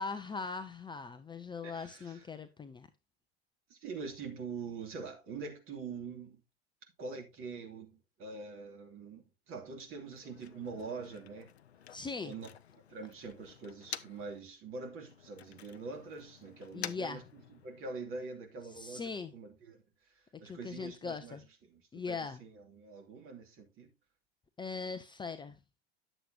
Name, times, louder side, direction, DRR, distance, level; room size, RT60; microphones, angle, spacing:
voice 1, 0.0-2.9 11.9-12.3 16.7-17.2 18.8-19.3 20.4-21.4 21.9-22.4 24.6-25.6, left 4 dB, 15° left, 0.7 m, -40 dB
voice 2, 1.6-2.2 3.7-6.4 7.0-11.5 12.2-12.5 12.9-21.4 21.7-23.9, right 4 dB, 40° right, 2.8 m, -44 dB
Motor vehicle (road), 9.9-14.4 14.7-18.0, left 9 dB, 85° left, 0.6 m, -49 dB
10.0 x 7.6 x 2.8 m
figure-of-eight pair, 80°, 32 cm